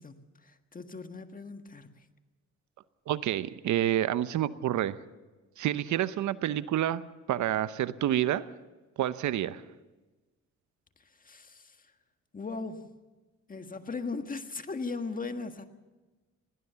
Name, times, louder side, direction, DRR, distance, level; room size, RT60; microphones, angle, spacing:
voice 1, 0.0-2.1 11.0-11.9 12.3-12.9 13.5-15.6, left 4 dB, 30° left, 7 dB, 1.6 m, -38 dB
voice 2, 3.1-5.0 5.6-7.0 7.3-8.5 9.0-9.6, right 12 dB, 70° right, 15 dB, 0.8 m, -28 dB
21.0 x 18.0 x 7.0 m, 1.2 s
cardioid pair, 90°, 30 cm